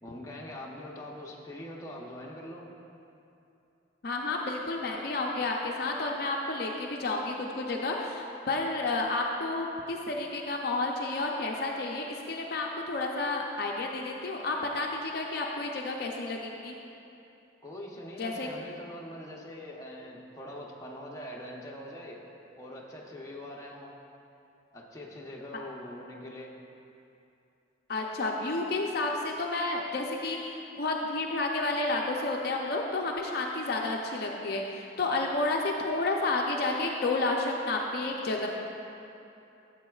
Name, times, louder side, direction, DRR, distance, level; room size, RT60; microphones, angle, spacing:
voice 1, 0.0-2.7 17.6-22.2 22.6-24.0 24.7-26.5, left 1 dB, 15° left, -3 dB, 0.7 m, -43 dB
voice 2, 4.0-16.7 18.2-18.5 27.9-38.5, left 2 dB, 50° left, 0 dB, 0.5 m, -31 dB
12.0 x 7.6 x 2.3 m, 2.8 s
head